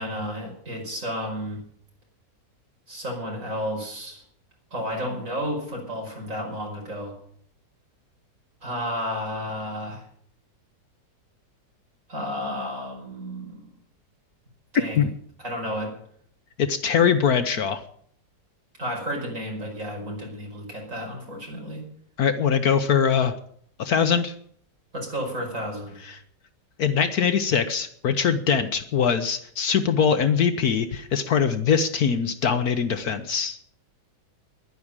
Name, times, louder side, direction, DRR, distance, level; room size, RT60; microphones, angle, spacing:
voice 1, 0.0-1.6 2.9-4.2 4.7-7.1 8.6-10.0 12.1-13.7 14.7-15.0 15.4-15.9 18.8-21.8 24.9-26.0, equal, 45° right, 0 dB, 5.5 m, -32 dB
voice 2, 16.6-17.8 22.2-23.3 23.8-24.3 26.0-26.2 26.8-33.6, left 7 dB, 65° left, 10 dB, 1.3 m, -22 dB
11.0 x 9.8 x 8.8 m, 0.62 s
omnidirectional pair, 1.9 m